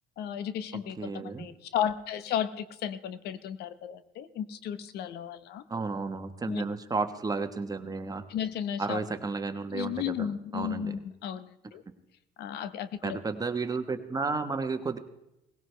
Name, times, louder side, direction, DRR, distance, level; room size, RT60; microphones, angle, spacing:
voice 1, 0.2-5.6 6.5-6.6 8.3-9.0 9.7-11.8 12.4-13.2, left 9 dB, 75° left, 13 dB, 0.9 m, -34 dB
voice 2, 1.0-1.5 5.7-8.2 8.8-10.9 13.0-15.0, right 4 dB, 20° right, 8 dB, 1.2 m, -32 dB
19.0 x 16.5 x 3.3 m, 0.89 s
cardioid pair, 110°, 17 cm